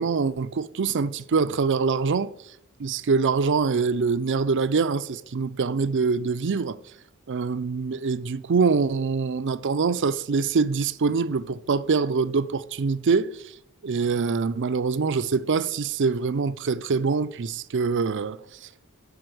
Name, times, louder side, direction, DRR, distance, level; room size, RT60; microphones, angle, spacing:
voice 1, 0.0-2.3 2.8-6.8 7.3-13.4 13.8-18.4, right 5 dB, 55° right, 0.5 m, -24 dB
9.8 x 5.2 x 7.8 m
head